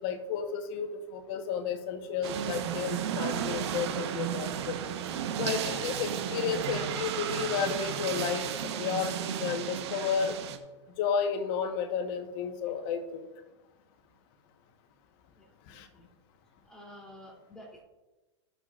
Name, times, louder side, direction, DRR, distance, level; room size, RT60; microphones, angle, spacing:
voice 1, 0.0-4.8 5.4-8.5 8.8-10.4 11.0-13.3 15.7-15.9, left 6 dB, 55° left, 7 dB, 1.3 m, -32 dB
sound 1, 2.2-10.6, right 9 dB, 65° right, 1.1 m, -33 dB
voice 2, 16.6-17.8, left 1 dB, 5° left, -3 dB, 3.0 m, -50 dB
17.5 x 6.7 x 2.5 m, 1.1 s
hypercardioid pair, 105°, 15 cm